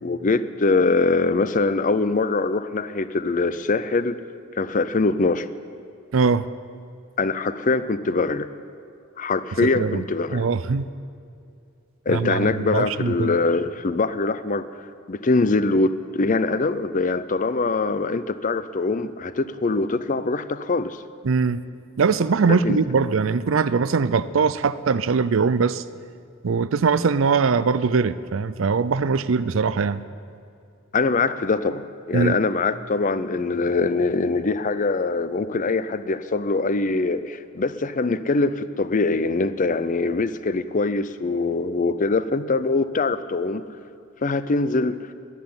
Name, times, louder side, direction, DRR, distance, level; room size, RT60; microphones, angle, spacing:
voice 1, 0.0-4.2 4.6-5.5 7.2-8.5 9.2-10.5 12.1-14.7 15.1-21.0 22.5-22.8 30.9-43.6 44.2-45.0, left 3 dB, 40° left, 14 dB, 0.5 m, -23 dB
voice 2, 6.1-6.5 9.6-10.0 10.3-10.9 12.1-13.3 21.2-21.6 22.0-25.8 26.4-30.0 32.1-32.3, right 5 dB, 65° right, 16 dB, 0.5 m, -21 dB
11.5 x 11.0 x 9.5 m, 2.4 s
head